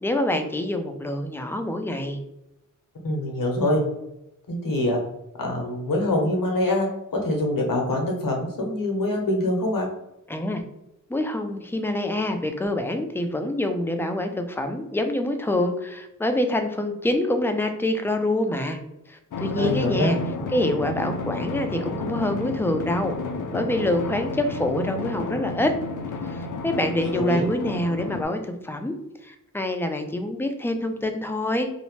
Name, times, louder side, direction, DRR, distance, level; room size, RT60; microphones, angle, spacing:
voice 1, 0.0-2.2 10.3-10.6 11.1-18.8 19.1-20.2 20.5-23.2 23.5-25.7 26.3-28.9 29.2-31.7, left 1 dB, 5° left, 6 dB, 0.3 m, -26 dB
voice 2, 3.0-3.8 4.5-5.0 5.4-9.9 19.6-20.1 27.0-27.5, left 1 dB, 85° left, 0 dB, 0.9 m, -24 dB
Drum, 19.3-28.2, left 3 dB, 65° left, 0.4 m, -31 dB
2.7 x 2.0 x 3.0 m, 0.88 s
wide cardioid pair, 75°, 33 cm